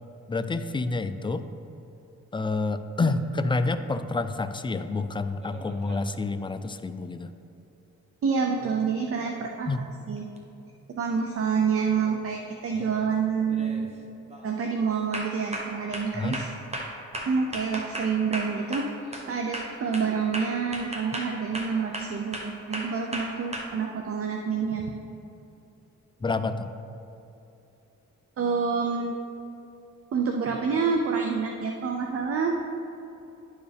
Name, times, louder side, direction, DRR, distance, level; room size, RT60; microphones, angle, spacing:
voice 1, 0.3-1.4 2.3-7.3 9.7-9.8 16.1-16.4 26.2-26.7, left 3 dB, 15° left, 10 dB, 0.3 m, -28 dB
sound 1, 5.4-6.1 10.4-10.5 12.0-12.3 12.7-13.0 13.5-13.9 14.3-14.5 15.1-19.3 19.5-23.6, right 1 dB, 20° right, 1.0 m, -36 dB
voice 2, 8.2-9.7 10.1-10.3 10.9-13.9 14.4-16.5 17.3-24.9 28.4-29.2 30.1-32.6, right 5 dB, 50° right, 2 dB, 0.6 m, -27 dB
11.0 x 4.7 x 3.4 m, 2.7 s
cardioid pair, 75°, 30 cm